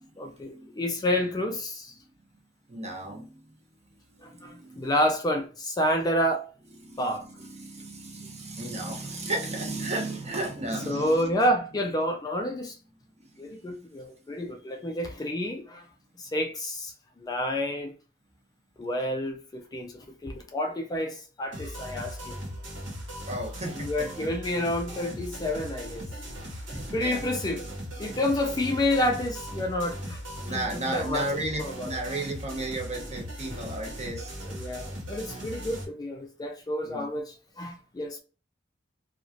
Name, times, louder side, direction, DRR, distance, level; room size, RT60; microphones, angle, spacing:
voice 1, 0.2-2.0 4.2-6.4 7.0-7.2 10.9-12.8 13.4-15.9 16.2-17.9 18.8-22.4 23.7-26.1 26.9-27.6 28.0-30.2 30.5-31.9 34.4-38.2, left 1 dB, 20° left, 0.3 m, -29 dB
voice 2, 2.7-3.4 4.4-4.9 6.8-7.0 7.4-11.3 23.3-24.3 26.5-27.2 30.4-34.3 36.8-37.1, right 2 dB, 35° right, 0.9 m, -34 dB
sound 1, 21.5-35.8, equal, 80° right, 1.2 m, -38 dB
3.1 x 2.4 x 2.5 m
head